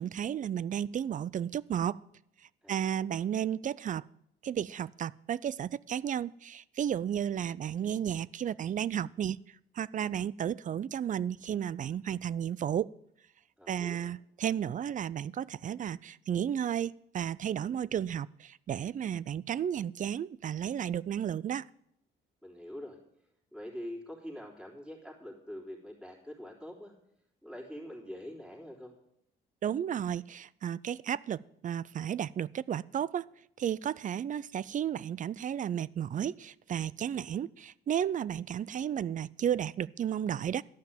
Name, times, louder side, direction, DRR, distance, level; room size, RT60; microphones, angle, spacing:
voice 1, 0.0-2.0 2.7-4.1 4.4-9.4 9.8-12.9 13.7-21.7 29.6-33.3 33.6-40.6, right 9 dB, 40° right, 0.4 m, -33 dB
voice 2, 2.6-3.0 13.6-14.1 22.4-23.0 23.5-26.9 27.4-28.9, equal, 5° right, 3.4 m, -44 dB
12.5 x 5.9 x 9.0 m
cardioid pair, 90°, 20 cm